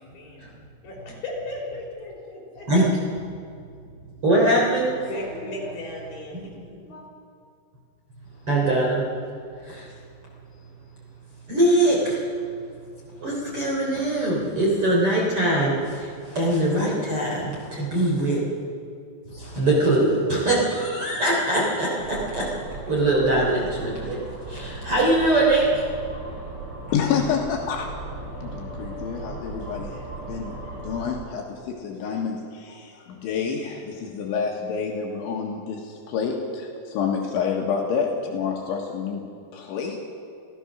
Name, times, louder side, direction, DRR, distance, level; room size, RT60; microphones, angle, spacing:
voice 1, 0.0-3.1 4.9-7.0, left 1 dB, 45° left, -2 dB, 6.0 m, -36 dB
voice 2, 4.2-4.9 6.3-6.5 8.4-9.0 9.6-9.9 11.5-12.3 13.2-18.4 19.3-22.5 22.9-24.2 24.5-25.8, right 1 dB, 30° right, -3 dB, 3.4 m, -22 dB
sound 1, 22.0-31.2, right 2 dB, 70° right, 7.7 m, -37 dB
voice 3, 26.9-27.9 28.4-30.0 30.3-40.1, left 6 dB, 70° left, 0 dB, 3.7 m, -28 dB
28.0 x 16.0 x 6.3 m, 2.3 s
omnidirectional pair, 5.9 m